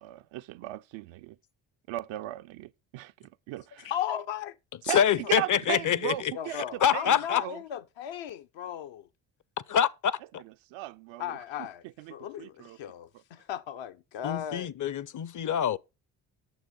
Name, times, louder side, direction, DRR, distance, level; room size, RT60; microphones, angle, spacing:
voice 1, 0.0-1.4 1.9-3.9 4.9-7.6 10.4-11.4 12.0-12.8, right 16 dB, 75° right, 0.6 m, -37 dB
voice 2, 3.8-4.6 5.2-5.3 6.3-9.1 11.2-11.8 12.1-14.7, left 10 dB, 70° left, 0.8 m, -36 dB
voice 3, 4.9-6.3 6.8-7.4 9.7-10.4 14.2-15.8, left 9 dB, 40° left, 0.6 m, -26 dB
9.4 x 6.7 x 5.3 m
supercardioid pair, 55°, 47 cm